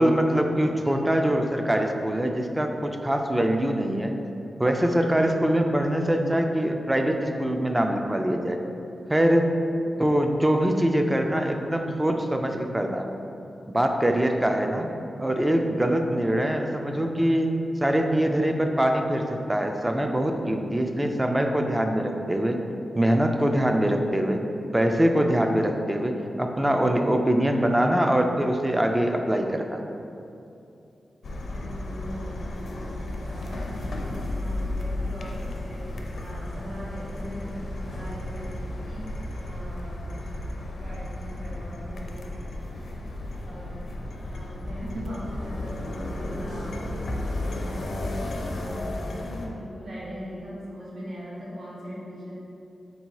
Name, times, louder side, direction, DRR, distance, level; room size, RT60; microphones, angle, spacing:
voice 1, 0.0-4.1 4.6-8.6 9.1-9.5 10.0-13.1 13.7-14.9 15.2-17.5 17.8-22.6 23.0-24.4 24.7-29.8 44.9-45.1, right 1 dB, 15° right, 4 dB, 0.3 m, -23 dB
sound 1, 31.2-49.5, left 1 dB, 70° left, 0.4 m, -33 dB
voice 2, 31.5-39.1 39.4-43.2 43.4-43.9 44.2-47.1 47.5-52.3, equal, 85° right, -7 dB, 1.1 m, -40 dB
3.7 x 2.7 x 4.5 m, 2.7 s
wide cardioid pair, 105°, 0 cm